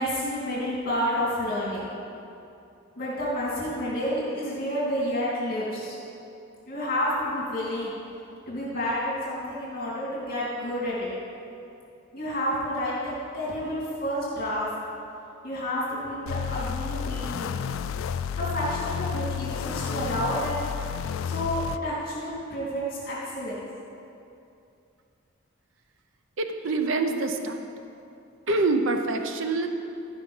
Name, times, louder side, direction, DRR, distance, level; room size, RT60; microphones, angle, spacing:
voice 1, 0.0-1.9 3.0-5.9 6.7-7.9 8.5-11.1 12.1-14.7 15.4-17.6 18.4-20.9 21.2-23.6, equal, 45° left, -8 dB, 2.6 m, -30 dB
sound 1, 16.3-21.8, left 7 dB, 75° left, 0.3 m, -31 dB
voice 2, 26.4-27.7 28.5-29.7, right 3 dB, 70° right, 6 dB, 0.7 m, -25 dB
13.0 x 5.3 x 5.5 m, 2.7 s
head